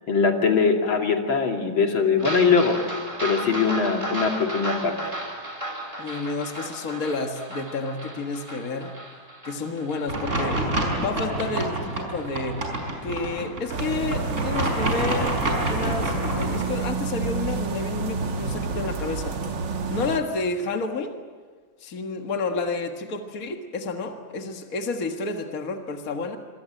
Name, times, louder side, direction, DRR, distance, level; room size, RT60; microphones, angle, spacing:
voice 1, 0.1-2.8 3.2-5.0, left 5 dB, 80° left, 3 dB, 3.4 m, -21 dB
sound 1, 2.2-12.9 13.3-13.4 13.8-13.9 14.2-14.3, right 1 dB, 15° right, 3.8 m, -35 dB
voice 2, 6.0-8.9 9.4-10.6 10.9-12.8 13.0-19.4 19.9-21.2 21.8-26.4, left 3 dB, 45° left, 5 dB, 2.1 m, -30 dB
sound 2, 10.1-16.6, right 1 dB, 35° right, 5.6 m, -28 dB
sound 3, 13.7-20.2, right 4 dB, 65° right, 2.4 m, -29 dB
26.5 x 24.5 x 9.1 m, 1.5 s
omnidirectional pair, 2.1 m